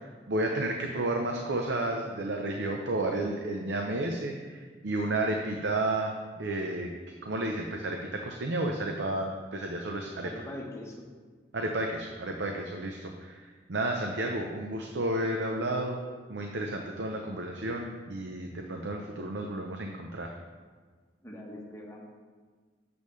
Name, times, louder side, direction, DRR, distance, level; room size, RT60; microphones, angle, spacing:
voice 1, 0.3-6.9 7.2-10.3 11.5-16.0 16.3-20.3, right 2 dB, 85° right, 2 dB, 0.6 m, -32 dB
voice 2, 10.2-11.0 21.2-22.0, left 1 dB, 15° left, -2 dB, 1.2 m, -42 dB
8.4 x 6.9 x 3.2 m, 1.5 s
head